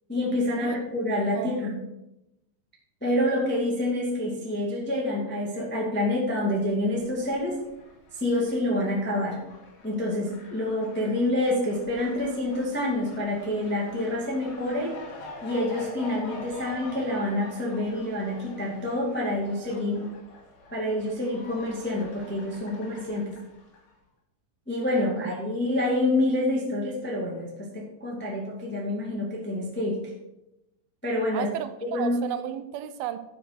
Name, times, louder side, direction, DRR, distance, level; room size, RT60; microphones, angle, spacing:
voice 1, 0.1-1.8 3.0-7.6 8.1-9.4 9.8-14.9 15.4-20.0 20.7-23.3 24.7-30.0 31.0-31.5 31.8-32.2, left 1 dB, 5° left, -3 dB, 0.7 m, -27 dB
voice 2, 1.3-1.7 24.9-25.3 31.3-33.2, right 12 dB, 80° right, 11 dB, 2.4 m, -34 dB
Fowl, 6.6-23.9, left 2 dB, 70° left, 3.7 m, -46 dB
11.0 x 4.7 x 5.9 m, 0.91 s
omnidirectional pair, 4.4 m